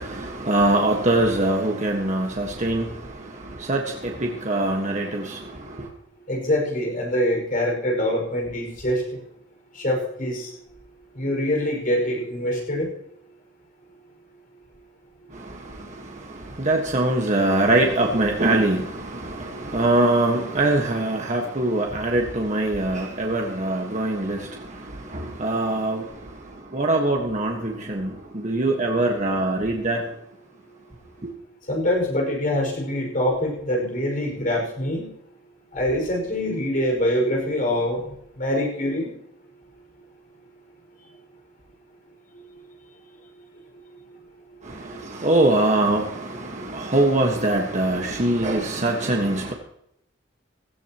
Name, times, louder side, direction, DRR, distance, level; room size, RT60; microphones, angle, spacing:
voice 1, 0.0-5.9 15.3-30.2 31.2-31.3 44.6-49.5, right 2 dB, 40° right, 1.5 m, -23 dB
voice 2, 6.3-9.2 9.7-10.5 11.1-12.9 31.7-35.1 35.7-38.0 38.4-39.1 44.9-45.0, left 1 dB, 45° left, 5.5 m, -24 dB
17.0 x 15.0 x 3.0 m
head